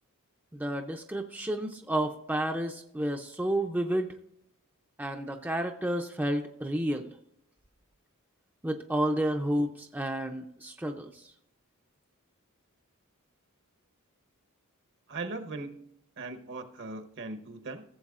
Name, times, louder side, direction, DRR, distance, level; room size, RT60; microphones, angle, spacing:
voice 1, 0.5-4.1 5.0-7.1 8.6-11.2, right 1 dB, 10° right, 3 dB, 0.5 m, -31 dB
voice 2, 15.1-15.9 16.2-17.8, right 3 dB, 55° right, 8 dB, 1.0 m, -39 dB
16.0 x 7.4 x 2.4 m, 0.72 s
head